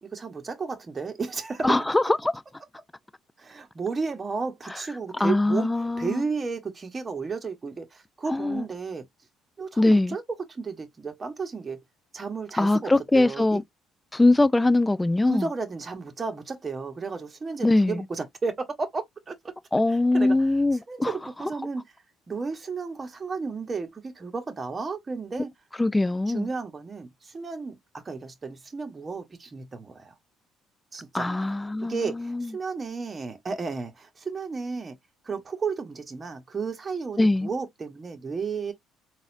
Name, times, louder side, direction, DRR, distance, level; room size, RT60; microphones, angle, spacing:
voice 1, 0.0-1.8 3.4-5.7 6.0-9.0 9.6-11.8 12.1-13.6 15.3-19.5 19.9-20.5 20.9-21.8 22.3-25.5 26.3-30.2 30.9-31.3 31.9-35.0 35.2-38.7, right 4 dB, 25° right, 1.1 m, -33 dB
voice 2, 1.6-2.3 5.2-6.2 8.3-8.6 9.8-10.2 12.6-13.6 14.1-15.5 17.6-18.0 19.7-21.1 25.8-26.5 31.1-32.5 37.2-37.5, left 2 dB, 10° left, 0.3 m, -22 dB
4.0 x 2.4 x 2.6 m
cardioid pair, 100°, 0 cm